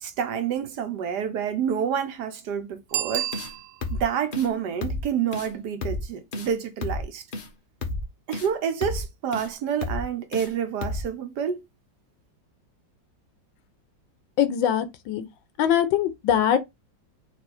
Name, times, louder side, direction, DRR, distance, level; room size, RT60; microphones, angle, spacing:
voice 1, 0.0-3.3 3.9-7.2 8.3-11.6, right 8 dB, 70° right, 1.2 m, -28 dB
Bicycle bell, 2.9-4.1 9.5-9.6, right 12 dB, 90° right, 1.4 m, -30 dB
sound 1, 3.3-3.5 3.8-4.0 4.3-4.5 4.8-5.0 5.3-5.5 5.8-6.0 6.3-6.5 6.8-7.0 7.3-7.5 7.8-8.0 8.3-8.5 8.8-9.0 9.3-9.5 9.8-10.0 10.3-10.5 10.8-11.0, left 2 dB, 55° left, 0.5 m, -31 dB
voice 2, 14.4-15.3 15.6-16.6, left 9 dB, 80° left, 1.4 m, -22 dB
4.5 x 2.7 x 4.2 m
omnidirectional pair, 2.1 m